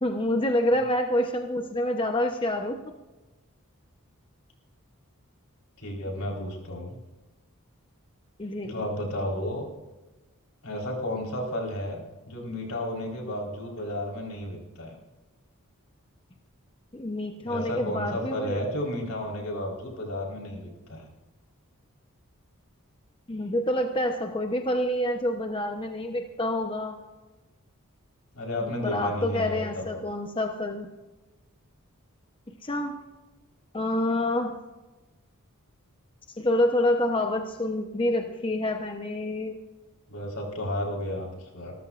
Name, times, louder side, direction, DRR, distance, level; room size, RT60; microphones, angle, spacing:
voice 1, 0.0-2.8 8.4-8.8 16.9-18.7 23.3-27.0 28.6-30.9 32.6-33.0 33.7-34.5 36.4-39.6, left 1 dB, 25° left, 4 dB, 0.9 m, -27 dB
voice 2, 5.8-6.9 8.6-9.7 10.6-15.0 17.4-21.1 28.3-30.0 40.1-41.7, left 1 dB, 80° left, -1 dB, 4.3 m, -32 dB
26.5 x 13.5 x 2.5 m, 1.1 s
head